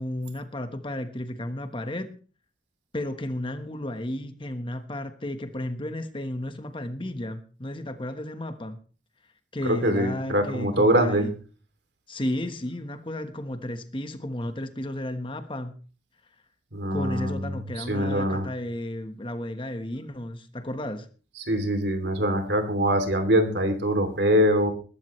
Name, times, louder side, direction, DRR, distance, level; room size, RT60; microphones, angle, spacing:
voice 1, 0.0-2.1 2.9-8.8 9.5-11.3 12.1-15.7 16.9-21.1, left 1 dB, 30° left, 8 dB, 1.2 m, -33 dB
voice 2, 9.6-11.3 16.7-18.4 21.4-24.7, equal, 65° right, 7 dB, 2.9 m, -23 dB
21.0 x 12.5 x 3.2 m, 0.37 s
head